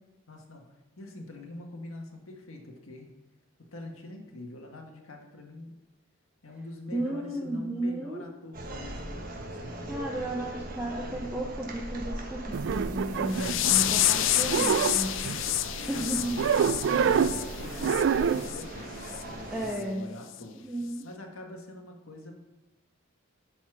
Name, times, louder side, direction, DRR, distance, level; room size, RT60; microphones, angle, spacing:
voice 1, 0.3-3.1 3.6-5.8 6.4-10.0 13.0-13.9 15.7-16.5 16.8-20.6 21.0-22.3, left 1 dB, 90° left, 2 dB, 1.6 m, -45 dB
voice 2, 6.9-8.3 9.9-15.2 15.9-16.4 17.6-17.9 19.5-20.1 20.6-21.1, right 1 dB, 5° right, -3 dB, 0.7 m, -34 dB
sound 1, 8.5-19.8, right 1 dB, 40° right, 1.2 m, -39 dB
sound 2, 12.5-14.1 14.3-15.6 16.4-17.5 17.8-18.5, right 7 dB, 60° right, 0.3 m, -26 dB
sound 3, 13.3-18.0 18.4-18.6 19.1-19.2 19.7-19.8 20.3-20.4, left 13 dB, 65° left, 0.4 m, -29 dB
11.0 x 4.2 x 6.1 m, 1.0 s
head